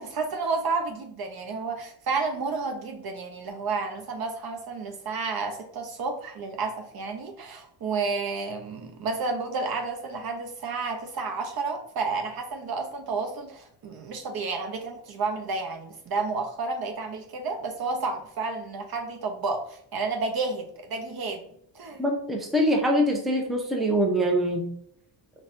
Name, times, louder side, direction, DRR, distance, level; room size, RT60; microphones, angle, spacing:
voice 1, 0.0-21.5 21.7-22.0, right 4 dB, 50° right, 4 dB, 0.6 m, -31 dB
voice 2, 22.0-24.7, equal, ahead, 1 dB, 0.6 m, -24 dB
4.0 x 2.3 x 2.5 m, 0.67 s
cardioid pair, 80°, 49 cm